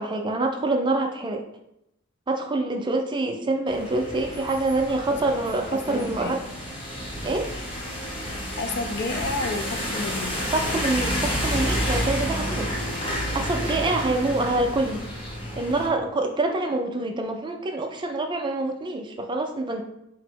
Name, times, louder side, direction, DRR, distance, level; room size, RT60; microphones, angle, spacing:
voice 1, 0.0-1.4 2.3-6.4 7.2-7.5 10.5-12.7 13.3-15.0 15.6-19.8, right 2 dB, 20° right, 3 dB, 0.4 m, -26 dB
sound 1, 3.7-15.9, equal, 25° left, 0.8 m, -30 dB
voice 2, 5.7-6.4 8.2-10.4, left 3 dB, 50° left, 7 dB, 0.4 m, -31 dB
4.1 x 2.0 x 4.5 m, 0.81 s
head